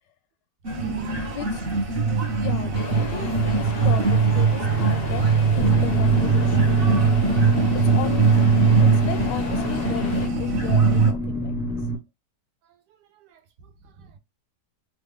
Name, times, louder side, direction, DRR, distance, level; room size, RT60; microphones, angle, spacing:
sound 1, 0.6-11.1, right 5 dB, 45° right, 0.8 m, -21 dB
voice 1, 0.6-1.2 10.9-11.4 13.0-14.2, right 7 dB, 75° right, 1.3 m, -40 dB
voice 2, 1.3-1.7 2.4-5.2 5.5-6.8 7.3-8.3 8.8-11.5, left 8 dB, 85° left, 1.3 m, -35 dB
sound 2, 2.7-10.3, left 5 dB, 60° left, 0.6 m, -35 dB
sound 3, 5.6-12.0, left 2 dB, ahead, 0.7 m, -28 dB
3.3 x 2.3 x 3.5 m
omnidirectional pair, 1.9 m